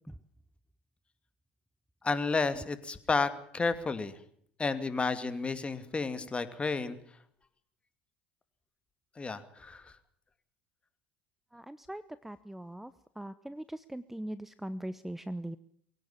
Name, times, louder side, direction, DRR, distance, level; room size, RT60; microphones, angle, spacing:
voice 1, 2.0-4.2 4.6-7.0 9.2-9.9, left 4 dB, 25° left, 11 dB, 2.6 m, -31 dB
voice 2, 11.5-15.6, right 1 dB, 5° right, 15 dB, 0.9 m, -41 dB
23.0 x 17.0 x 8.8 m, 0.65 s
hypercardioid pair, 65°, 5 cm